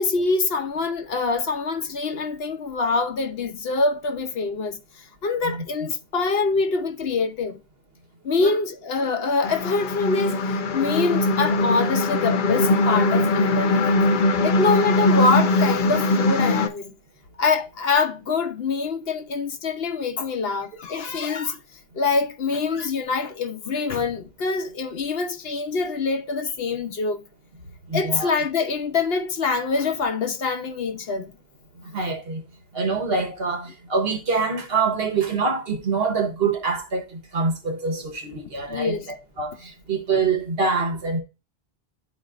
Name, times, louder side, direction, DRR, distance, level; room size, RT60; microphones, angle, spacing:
voice 1, 0.0-7.6 8.2-13.9 14.4-16.9 17.4-21.6 21.9-27.2 27.9-31.3 38.7-39.1, left 4 dB, 75° left, 1.1 m, -25 dB
sound 1, 9.4-16.7, left 2 dB, 55° left, 0.8 m, -21 dB
voice 2, 27.9-28.3 31.9-32.4 32.7-41.2, right 4 dB, 70° right, 1.4 m, -25 dB
11.0 x 4.2 x 2.5 m
omnidirectional pair, 1.0 m